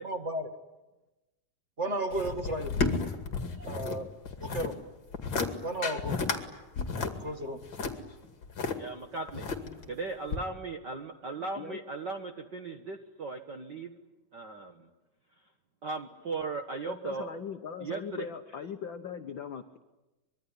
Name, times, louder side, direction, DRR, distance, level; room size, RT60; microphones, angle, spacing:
voice 1, 0.0-0.5 1.8-2.8 3.6-4.1 4.4-4.7 5.6-6.2 7.2-7.6, right 1 dB, 30° right, 5 dB, 1.5 m, -33 dB
sound 1, 2.1-4.0 4.3-4.7 5.1-5.5 5.8-6.4 6.8-8.7 9.3-9.9 10.3-10.4, left 4 dB, 40° left, 2.7 m, -32 dB
voice 2, 8.7-9.5 9.9-13.9 14.3-14.9 15.8-17.3 17.8-18.3, right 3 dB, 55° right, 5 dB, 1.3 m, -37 dB
voice 3, 16.9-19.8, left 7 dB, 80° left, 7 dB, 1.0 m, -39 dB
25.0 x 23.0 x 9.9 m, 1.1 s
omnidirectional pair, 3.7 m